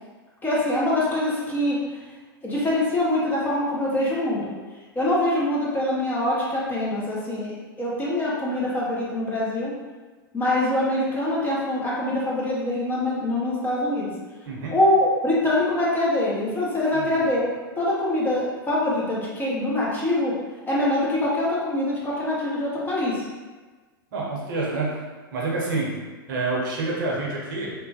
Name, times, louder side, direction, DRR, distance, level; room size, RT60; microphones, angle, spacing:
voice 1, 0.4-1.8 2.4-4.5 4.9-7.5 7.8-9.7 10.3-14.1 14.7-17.4 17.8-20.3 20.7-23.2, left 1 dB, 15° left, -6 dB, 0.8 m, -24 dB
voice 2, 24.1-25.0 25.3-26.0 26.3-27.7, right 3 dB, 60° right, -4 dB, 0.8 m, -27 dB
3.1 x 2.1 x 2.7 m, 1.3 s
figure-of-eight pair, 100°, 12 cm